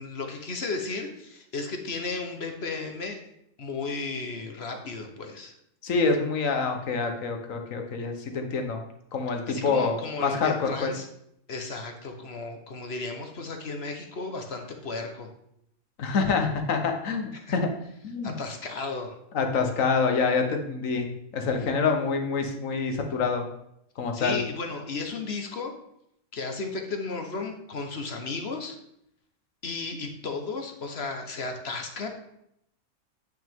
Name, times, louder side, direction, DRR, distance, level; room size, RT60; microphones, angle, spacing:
voice 1, 0.0-3.2 3.6-5.5 9.5-11.1 11.5-15.3 17.3-17.5 18.2-19.2 24.1-25.7 26.3-28.8 29.6-32.1, left 3 dB, 50° left, 4 dB, 1.2 m, -34 dB
voice 2, 5.8-8.8 9.1-10.9 16.0-17.7 18.0-18.3 19.3-23.4 24.0-24.4, left 4 dB, 70° left, 4 dB, 1.4 m, -26 dB
9.5 x 6.2 x 3.6 m, 0.76 s
omnidirectional pair, 1.5 m